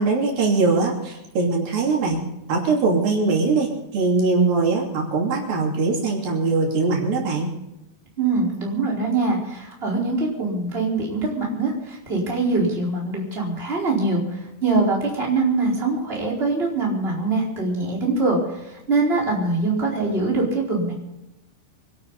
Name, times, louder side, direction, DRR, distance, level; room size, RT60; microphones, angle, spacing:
voice 1, 0.0-2.2 2.5-7.5, right 3 dB, 70° right, -1 dB, 4.7 m, -21 dB
voice 2, 8.2-20.9, right 3 dB, 15° right, -3 dB, 4.5 m, -23 dB
25.5 x 12.5 x 4.0 m, 0.92 s
omnidirectional pair, 4.2 m